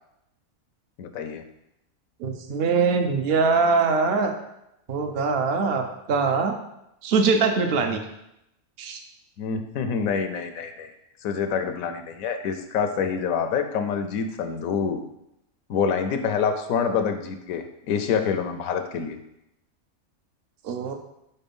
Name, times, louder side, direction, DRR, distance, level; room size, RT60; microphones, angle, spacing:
voice 1, 1.0-1.4 9.4-10.9 11.2-15.0 15.7-19.2, left 6 dB, 75° left, 7 dB, 1.0 m, -26 dB
voice 2, 2.2-4.3 4.9-6.6 7.0-8.0 8.8-9.0 20.6-20.9, right 4 dB, 55° right, 5 dB, 0.8 m, -22 dB
4.4 x 4.3 x 5.3 m, 0.84 s
omnidirectional pair, 1.5 m